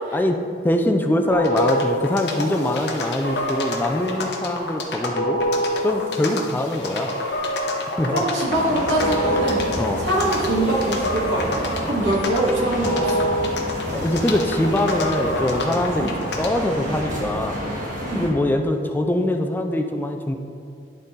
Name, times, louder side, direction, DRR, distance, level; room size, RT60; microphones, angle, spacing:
voice 1, 0.6-5.4 5.8-7.2 8.0-8.2 9.8-10.0 13.9-17.6 18.1-20.4, left 1 dB, 10° left, 4 dB, 0.3 m, -23 dB
sound 1, 1.3-16.7, left 1 dB, 65° left, 1.0 m, -27 dB
voice 2, 8.1-9.7 10.0-13.3 16.0-16.2 18.0-18.3, right 1 dB, 85° right, -3 dB, 1.7 m, -23 dB
sound 2, 8.4-18.3, equal, 45° right, 1.5 m, -30 dB
11.0 x 4.0 x 3.8 m, 2.5 s
head